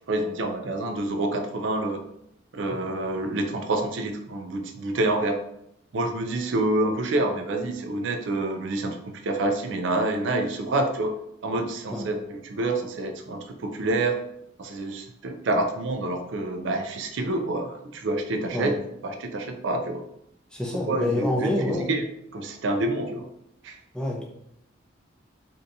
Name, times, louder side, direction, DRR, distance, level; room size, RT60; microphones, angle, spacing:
voice 1, 0.1-2.0 2.5-5.4 5.9-11.2 11.4-14.2 14.6-18.8 19.0-20.0 20.7-22.0 22.3-23.3 23.6-23.8, right 2 dB, 65° right, 5 dB, 0.4 m, -27 dB
voice 2, 20.5-22.0 23.9-24.2, left 1 dB, 5° left, -2 dB, 0.5 m, -27 dB
3.4 x 2.7 x 2.6 m, 0.77 s
head